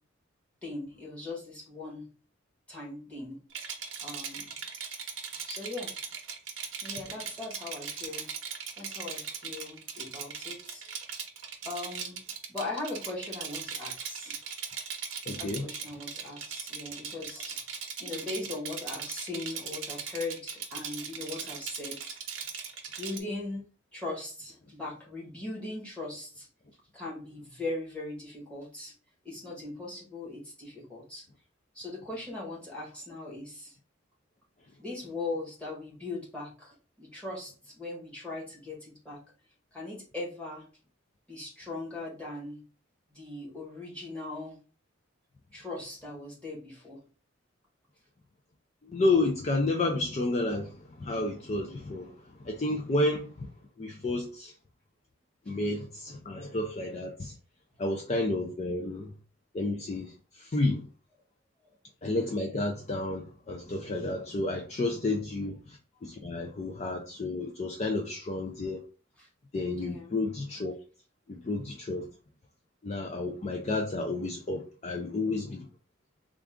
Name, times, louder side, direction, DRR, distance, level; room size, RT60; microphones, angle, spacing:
voice 1, 0.6-2.1 2.7-3.5 4.0-4.5 5.4-5.9 6.8-8.3 8.8-10.9 11.6-12.2 12.5-14.4 15.4-17.7 18.0-22.1 22.9-23.6 23.9-26.5 26.9-28.9 29.2-31.2 31.7-33.8 34.8-39.2 39.7-40.7 41.3-42.6 43.1-44.6 45.5-47.0 58.7-58.9 65.4-65.5 69.2-69.3 69.8-70.1, left 2 dB, 5° left, 1.3 m, -39 dB
Rattle, 3.5-23.2, right 6 dB, 65° right, 0.7 m, -39 dB
voice 2, 15.3-15.7 48.8-53.5 53.8-54.5 55.5-57.3 57.8-59.1 59.5-60.9 62.0-68.8 69.5-70.7 71.3-72.1 72.8-75.7, left 2 dB, 30° left, 0.4 m, -31 dB
3.6 x 2.4 x 3.6 m
head